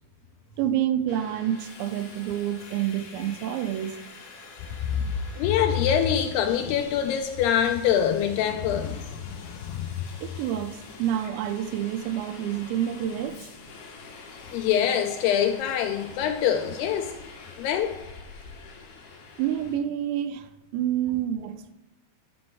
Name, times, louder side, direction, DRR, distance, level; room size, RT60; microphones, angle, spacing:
voice 1, 0.6-4.0 10.2-13.5 19.4-21.7, right 11 dB, 85° right, 2.9 m, -28 dB
Subway metro underground, 1.1-19.8, left 4 dB, 65° left, 3.4 m, -46 dB
voice 2, 4.8-9.9 14.5-17.1 17.6-17.9, left 9 dB, 80° left, 2.4 m, -25 dB
11.5 x 4.2 x 6.1 m
omnidirectional pair, 5.1 m